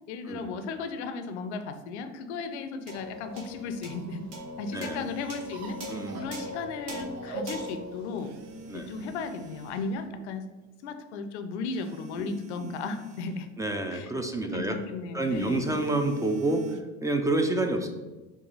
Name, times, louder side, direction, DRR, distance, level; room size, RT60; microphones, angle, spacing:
voice 1, 0.1-4.2 4.6-8.3 8.7-10.5 10.8-13.5 13.9-14.1 14.4-15.8, left 4 dB, 75° left, 8 dB, 0.5 m, -35 dB
sound 1, 2.9-9.5, left 1 dB, 50° right, 1.3 m, -41 dB
sound 2, 2.9-10.1, right 3 dB, 65° right, 0.9 m, -47 dB
voice 2, 4.7-5.1 5.9-6.3 8.7-8.9 12.1-12.7 13.6-14.8 15.1-17.9, right 2 dB, 10° right, 5 dB, 0.3 m, -29 dB
sound 3, 4.7-6.4 8.2-9.9 11.7-13.4 15.2-16.8, right 2 dB, 85° right, 0.5 m, -46 dB
4.7 x 2.3 x 4.0 m, 1.2 s
hypercardioid pair, 75°, 35 cm